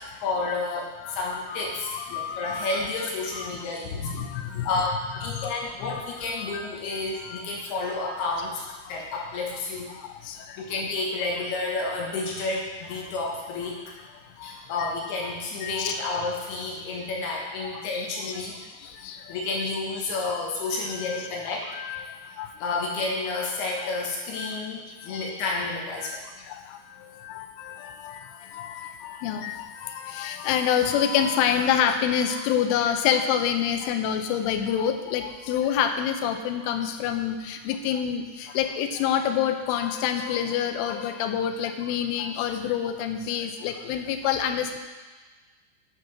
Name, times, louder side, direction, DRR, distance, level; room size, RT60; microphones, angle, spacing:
voice 1, 0.0-4.1 4.6-8.6 8.9-9.9 10.6-13.8 14.4-18.6 19.3-21.7 22.6-26.2, left 3 dB, 65° left, -2 dB, 2.9 m, -30 dB
voice 2, 1.5-2.7 3.3-3.6 4.0-4.7 5.3-6.0 6.4-6.7 7.2-7.6 8.8-9.0 9.9-10.6 14.4-14.9 15.2-16.1 17.6-18.1 18.8-19.4 20.9-22.5 23.8-23.9 24.4-24.6 25.0-25.2 26.0-44.8, left 9 dB, 85° left, 6 dB, 3.2 m, -28 dB
11.0 x 6.1 x 5.7 m, 1.3 s
omnidirectional pair, 5.5 m